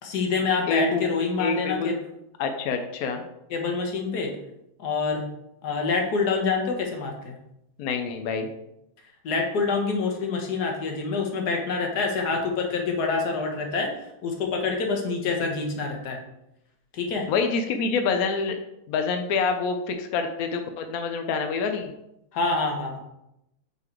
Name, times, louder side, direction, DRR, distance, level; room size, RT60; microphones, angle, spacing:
voice 1, 0.0-2.0 3.5-4.3 4.8-5.2 5.6-7.3 9.2-13.9 14.2-16.2 16.9-17.3 22.3-23.0, left 4 dB, 60° left, 2 dB, 1.5 m, -26 dB
voice 2, 0.7-1.0 1.4-1.9 2.4-3.2 7.8-8.5 17.3-18.6 18.9-21.9, left 5 dB, 75° left, 6 dB, 0.8 m, -26 dB
5.8 x 4.0 x 4.4 m, 0.83 s
omnidirectional pair, 2.2 m